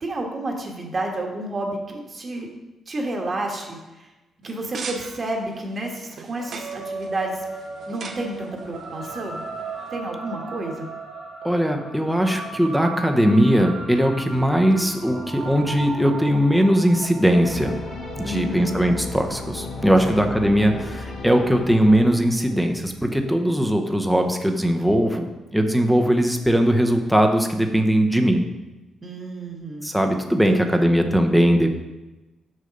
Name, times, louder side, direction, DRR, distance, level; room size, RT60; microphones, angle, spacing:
voice 1, 0.0-2.5 2.9-3.8 4.4-7.4 7.9-9.4 9.9-10.9 18.2-18.8 20.1-20.2 29.0-29.9 30.5-30.9, right 2 dB, 30° right, 1 dB, 1.4 m, -30 dB
sound 1, 4.4-9.9, right 5 dB, 50° right, 0.8 m, -40 dB
sound 2, 6.3-21.1, right 3 dB, 80° right, 2.7 m, -37 dB
voice 2, 11.4-17.7 18.2-28.5 29.8-31.7, equal, ahead, 3 dB, 0.7 m, -20 dB
sound 3, 17.4-23.0, left 3 dB, 60° left, 1.3 m, -34 dB
6.5 x 6.5 x 5.2 m, 1.1 s
cardioid pair, 140°, 0 cm